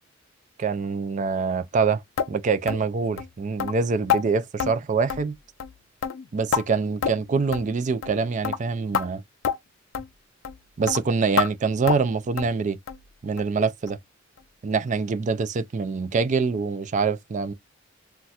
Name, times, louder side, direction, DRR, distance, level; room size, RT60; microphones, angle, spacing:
voice 1, 0.6-2.0 2.3-5.4 6.3-9.2 10.8-12.8 13.2-14.0 14.6-17.5, right 4 dB, 35° right, 0.3 m, -25 dB
sound 1, 2.2-2.3 2.7-2.8 3.2-3.3 3.6-3.7 4.1-4.2 4.6-4.7 5.1-5.3 5.6-5.8 6.0-6.6 7.0-7.3 7.5-7.7 8.0-8.2 8.4-8.6 8.9-9.1 9.4-9.6 9.9-10.1 10.4-10.6 10.9-11.0 11.4-11.5 11.9-12.1 12.4-12.5 12.9-13.0 13.4-13.5 13.9-14.0 14.4-14.5, left 7 dB, 65° left, 0.4 m, -27 dB
4.1 x 2.2 x 2.3 m
head